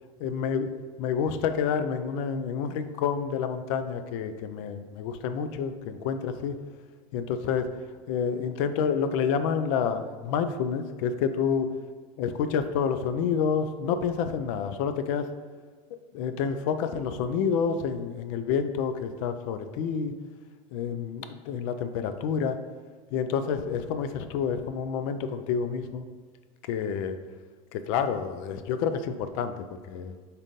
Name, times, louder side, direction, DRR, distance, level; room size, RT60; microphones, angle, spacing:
voice 1, 0.2-0.7 1.0-6.6 7.1-7.7 8.1-11.7 12.2-15.3 16.1-20.1 20.7-22.6 23.1-26.0 26.7-27.2 27.7-29.5 29.9-30.1, left 6 dB, 65° left, 10 dB, 0.4 m, -28 dB
4.0 x 3.5 x 2.6 m, 1.5 s
hypercardioid pair, 100°, 18 cm